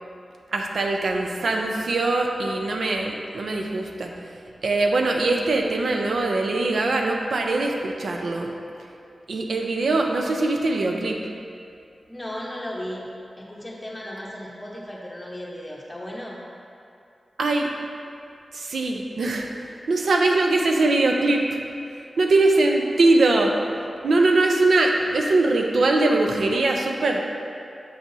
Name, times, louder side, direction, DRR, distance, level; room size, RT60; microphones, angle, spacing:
voice 1, 0.5-4.1 4.6-8.5 9.3-11.2 17.4-17.7 18.5-19.5 19.9-21.6 22.2-23.5 24.0-27.2, right 2 dB, 80° right, 2 dB, 0.6 m, -22 dB
voice 2, 12.1-13.1 13.4-16.4, left 1 dB, 15° left, -4 dB, 1.1 m, -35 dB
7.6 x 6.0 x 2.8 m, 2.5 s
wide cardioid pair, 90°, 0 cm